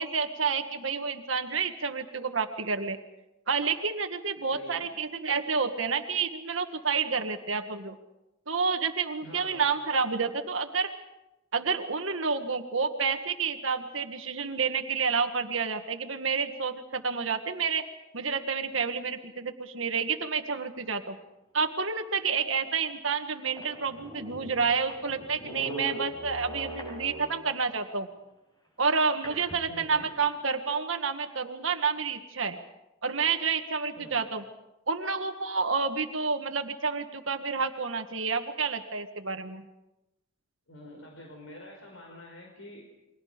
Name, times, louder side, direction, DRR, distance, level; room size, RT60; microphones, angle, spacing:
voice 1, 0.0-3.0 3.5-7.9 8.5-10.9 11.5-17.8 18.1-21.2 21.5-28.1 28.8-32.6 33.0-34.4 34.9-39.6, right 5 dB, 80° right, 6 dB, 1.7 m, -29 dB
voice 2, 4.5-4.9 9.2-9.7 29.7-30.1 34.0-34.3 40.7-42.9, left 1 dB, 90° left, 1 dB, 5.1 m, -47 dB
sound 1, 22.5-22.6 23.2-23.3 23.5-27.6 29.2-30.3, equal, 20° left, 6.5 m, -41 dB
29.5 x 23.0 x 5.2 m, 0.92 s
head